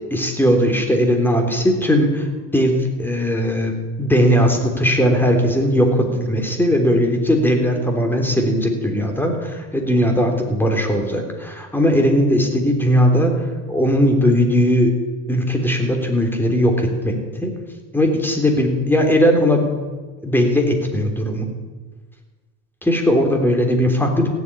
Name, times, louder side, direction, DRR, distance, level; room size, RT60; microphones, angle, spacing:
voice 1, 0.1-2.3 2.5-13.3 13.7-15.0 15.3-17.5 17.9-19.8 20.2-21.5 22.8-24.3, equal, 5° left, 3 dB, 3.5 m, -18 dB
16.0 x 8.2 x 9.8 m, 1.4 s
supercardioid pair, 95°, 30 cm